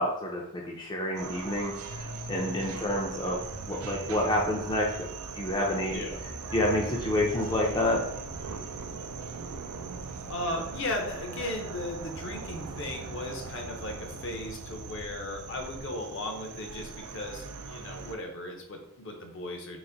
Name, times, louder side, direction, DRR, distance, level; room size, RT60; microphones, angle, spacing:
voice 1, 0.0-3.4 3.7-5.1 5.3-5.9 6.5-8.0, left 1 dB, 20° left, -2 dB, 0.5 m, -28 dB
sound 1, 1.2-18.1, right 5 dB, 80° right, 0.4 m, -41 dB
sound 2, 1.8-15.9, equal, 55° right, 0.8 m, -45 dB
voice 2, 10.3-19.8, left 1 dB, 55° left, 3 dB, 0.8 m, -36 dB
4.0 x 2.6 x 3.9 m, 0.77 s
head